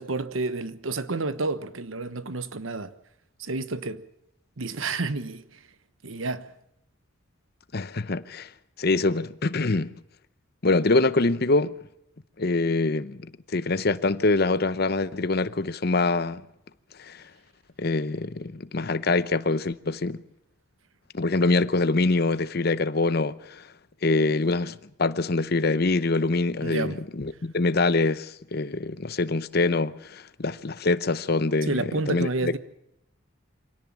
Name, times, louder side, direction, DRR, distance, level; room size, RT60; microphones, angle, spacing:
voice 1, 0.0-2.9 3.4-4.0 4.6-5.6 6.0-6.5 26.6-27.0 31.6-32.6, right 3 dB, 85° right, 1.1 m, -30 dB
voice 2, 7.7-8.5 8.8-9.9 10.6-11.8 12.4-16.4 17.0-17.2 17.8-20.2 21.1-23.7 24.0-32.6, left 3 dB, 50° left, 0.8 m, -25 dB
25.0 x 17.5 x 7.4 m
head